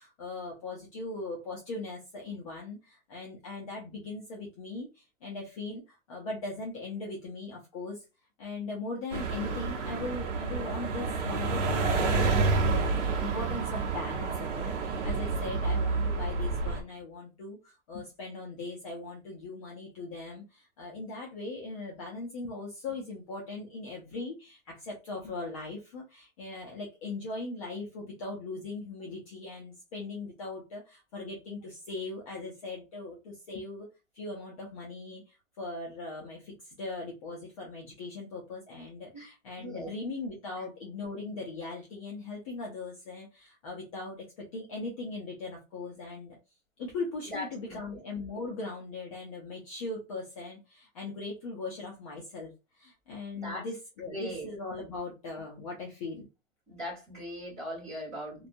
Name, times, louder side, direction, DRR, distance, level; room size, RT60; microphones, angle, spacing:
voice 1, 0.0-8.0 8.4-33.9 34.1-46.4 46.8-56.3, left 3 dB, 30° left, 0.4 m, -39 dB
sound 1, 9.1-16.8, right 4 dB, 65° right, 0.8 m, -29 dB
voice 2, 39.6-39.9 47.3-47.8 53.3-53.6 54.1-54.5 56.7-58.5, equal, 15° right, 1.3 m, -39 dB
2.6 x 2.2 x 2.5 m
hypercardioid pair, 160°, 39 cm